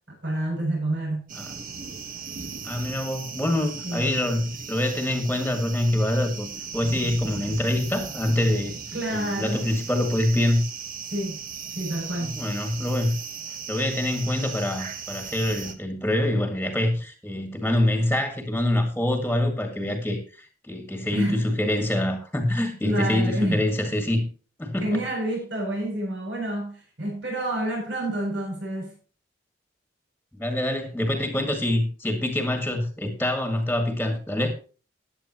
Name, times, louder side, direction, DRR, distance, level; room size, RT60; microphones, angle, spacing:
voice 1, 0.0-1.2 3.8-4.1 8.9-9.6 11.1-11.4 11.8-12.4 21.1-21.4 22.8-23.6 24.8-28.9, right 1 dB, 75° right, 7.7 m, -28 dB
sound 1, 1.3-15.7, right 5 dB, 45° right, 1.4 m, -37 dB
voice 2, 2.6-8.7 9.1-10.6 12.2-13.2 13.7-20.2 20.7-24.3 24.6-24.9 30.3-34.5, left 1 dB, 5° left, 2.0 m, -25 dB
16.0 x 10.0 x 3.0 m
head